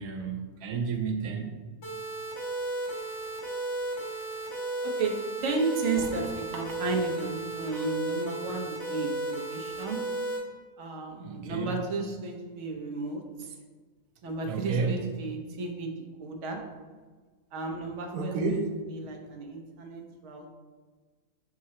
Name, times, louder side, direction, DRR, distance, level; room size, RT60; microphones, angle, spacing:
voice 1, 0.0-1.5 11.2-11.8 14.4-15.1 18.1-18.7, right 4 dB, 80° right, 4 dB, 1.1 m, -31 dB
sound 1, 1.8-10.4, right 2 dB, 50° left, 1.9 m, -34 dB
voice 2, 4.8-5.1 5.4-10.0 10.8-13.5 14.2-15.9 16.2-16.6 17.5-18.6 18.9-20.5, right 3 dB, 55° right, 1 dB, 1.0 m, -33 dB
6.0 x 3.8 x 4.2 m, 1.4 s
omnidirectional pair, 1.6 m